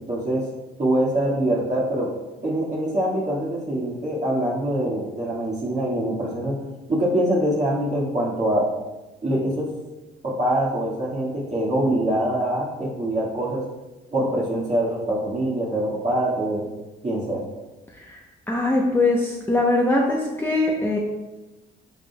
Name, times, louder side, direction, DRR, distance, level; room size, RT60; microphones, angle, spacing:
voice 1, 0.1-0.5 0.8-2.1 2.4-6.6 6.9-8.7 9.2-9.7 10.2-13.6 14.1-16.7 17.0-17.4, right 1 dB, 35° right, -6 dB, 2.0 m, -24 dB
voice 2, 18.5-21.0, left 2 dB, 10° left, -2 dB, 1.0 m, -21 dB
10.5 x 5.4 x 2.4 m, 1.1 s
cardioid pair, 90°, 20 cm